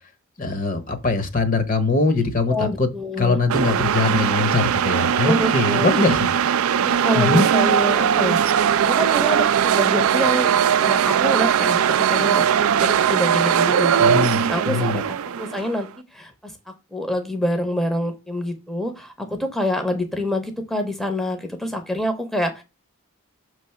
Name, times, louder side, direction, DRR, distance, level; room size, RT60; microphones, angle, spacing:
voice 1, 0.4-2.9 3.2-6.3 7.1-7.4 14.0-15.0, left 3 dB, 40° left, 0.7 m, -22 dB
voice 2, 2.5-3.4 5.2-6.2 6.8-8.5 8.8-10.5 10.8-12.5 12.8-15.0 15.4-16.5 16.9-22.6, left 1 dB, ahead, 0.6 m, -26 dB
sound 1, 3.5-15.8, right 8 dB, 75° right, 0.4 m, -19 dB
6.0 x 3.2 x 5.6 m
head